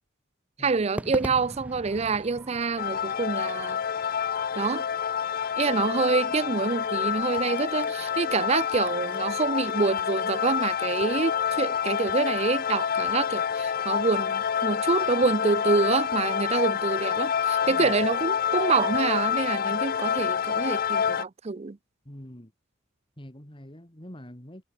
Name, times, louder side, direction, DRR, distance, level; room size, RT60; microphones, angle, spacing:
voice 1, 0.6-3.8 4.6-4.8 5.6-21.8, right 4 dB, 30° right, 0.5 m, -27 dB
Crowd / Fireworks, 1.0-15.4, equal, 5° right, 1.3 m, -46 dB
sound 1, 2.8-21.2, left 8 dB, 45° left, 0.4 m, -27 dB
sound 2, 7.4-7.6 8.7-8.9 10.0-10.2 11.0-11.2 12.1-12.3 13.1-13.3 14.0-14.4 15.2-15.4 16.1-16.3 17.1-17.3 18.0-18.2 18.9-19.1 20.2-20.4 21.1-21.3, right 2 dB, 75° right, 4.3 m, -57 dB
voice 2, 17.6-17.9 22.0-22.5 23.2-24.6, equal, 25° left, 3.0 m, -44 dB
head